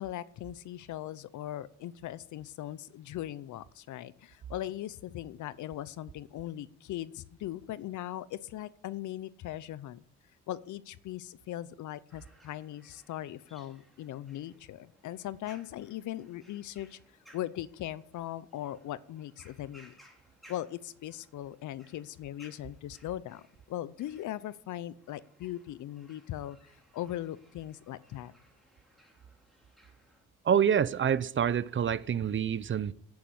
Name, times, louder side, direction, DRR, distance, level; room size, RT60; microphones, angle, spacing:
voice 1, 0.0-10.0 10.5-17.0 17.3-19.9 20.5-23.4 23.7-28.3, left 13 dB, 75° left, 0.8 m, -39 dB
sound 1, 12.1-30.2, equal, ahead, 4.3 m, -62 dB
voice 2, 30.4-32.9, right 8 dB, 40° right, 0.7 m, -27 dB
10.5 x 9.6 x 8.7 m
cardioid pair, 90°, 30 cm